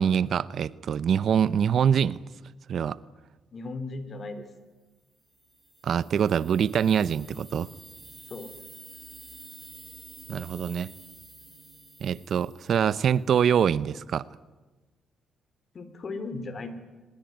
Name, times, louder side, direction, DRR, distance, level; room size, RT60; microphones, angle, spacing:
voice 1, 0.0-2.2 2.7-3.0 5.8-7.7 10.3-10.9 12.0-14.3, right 8 dB, 60° right, 18 dB, 0.7 m, -24 dB
voice 2, 3.5-4.5 8.3-8.5 15.7-16.7, left 3 dB, 45° left, 11 dB, 3.6 m, -36 dB
sound 1, 5.3-13.2, right 2 dB, 10° right, 5.8 m, -49 dB
23.0 x 21.0 x 9.4 m, 1.2 s
cardioid pair, 90°, 0 cm